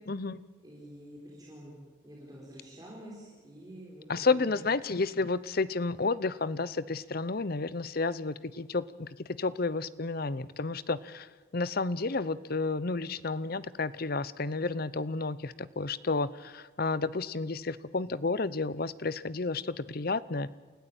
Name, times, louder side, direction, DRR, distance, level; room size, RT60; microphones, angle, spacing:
voice 1, 0.1-0.4 4.1-20.5, left 3 dB, 45° left, 17 dB, 0.7 m, -31 dB
voice 2, 0.6-1.8 2.0-4.5, equal, 20° right, -4 dB, 4.7 m, -48 dB
29.0 x 14.5 x 8.8 m, 1.4 s
head